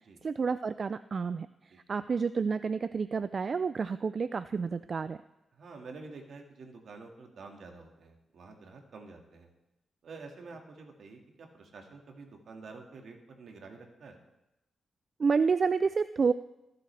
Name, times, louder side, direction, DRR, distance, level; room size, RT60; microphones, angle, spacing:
voice 1, 0.2-5.2 15.2-16.3, right 5 dB, 55° right, 13 dB, 0.3 m, -29 dB
voice 2, 5.5-9.5 10.0-14.2, right 3 dB, 75° right, 2 dB, 1.9 m, -49 dB
23.0 x 7.7 x 3.3 m, 0.94 s
cardioid pair, 70°, 0 cm